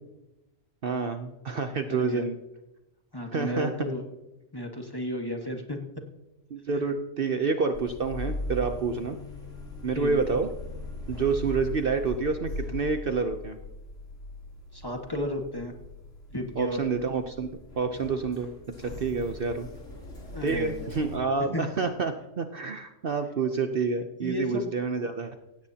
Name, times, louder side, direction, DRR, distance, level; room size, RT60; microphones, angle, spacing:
voice 1, 0.8-2.4 3.3-3.9 6.5-9.2 9.8-10.5 11.1-13.6 16.5-17.5 17.8-19.7 20.4-25.3, right 4 dB, 50° right, 6 dB, 0.9 m, -28 dB
voice 2, 1.9-2.2 3.1-4.0 4.5-5.8 6.8-6.9 9.9-10.2 14.7-15.7 16.3-16.8 20.3-20.9 21.5-21.6 24.2-24.7, left 1 dB, 20° left, 2 dB, 1.6 m, -33 dB
sound 1, 7.7-21.2, left 2 dB, 80° left, 3.7 m, -40 dB
17.0 x 16.5 x 2.9 m, 0.99 s
omnidirectional pair, 1.3 m